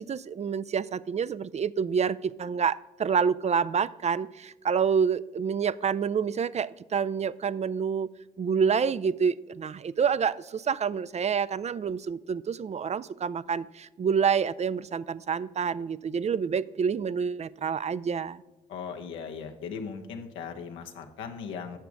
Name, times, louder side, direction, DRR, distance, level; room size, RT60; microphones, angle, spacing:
voice 1, 0.0-8.1 8.4-18.4, right 6 dB, 35° right, 18 dB, 0.4 m, -28 dB
voice 2, 18.7-21.8, left 6 dB, 80° left, 4 dB, 0.9 m, -38 dB
9.0 x 6.8 x 4.7 m, 1.1 s
hypercardioid pair, 40°, 20 cm